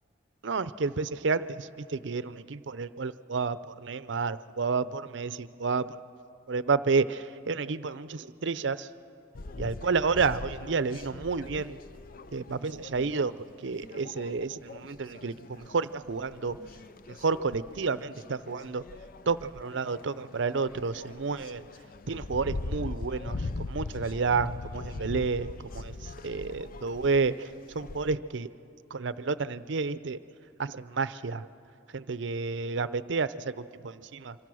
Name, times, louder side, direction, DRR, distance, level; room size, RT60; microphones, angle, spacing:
voice 1, 0.4-6.0 6.5-8.9 9.6-11.8 12.3-13.4 13.6-16.6 17.1-18.8 19.3-21.6 22.1-25.9 26.2-27.5 27.7-28.5 28.9-30.2 30.6-31.4 31.9-34.4, right 4 dB, 65° right, 15 dB, 0.6 m, -30 dB
sound 1, 9.3-28.2, left 3 dB, 50° left, 0.5 m, -41 dB
25.5 x 24.5 x 6.3 m, 2.8 s
head